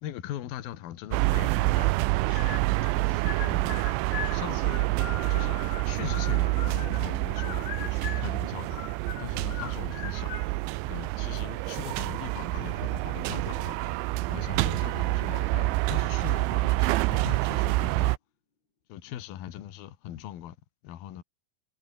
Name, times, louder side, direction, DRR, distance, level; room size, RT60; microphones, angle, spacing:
voice 1, 0.0-1.9 2.2-2.6 3.0-3.8 4.3-4.9 5.3-8.8 9.2-10.3 10.9-13.8 14.3-18.1 18.9-20.6 20.8-21.2, left 12 dB, 60° left, 3.2 m, -40 dB
sound 1, 1.1-18.2, right 20 dB, 80° right, 3.0 m, -27 dB
sound 2, 2.3-2.9 3.2-7.1 7.4-8.3 8.7-10.5, left 11 dB, 80° left, 4.9 m, -40 dB
sound 3, 13.5-17.8, left 4 dB, 25° left, 3.7 m, -54 dB
omnidirectional pair, 5.5 m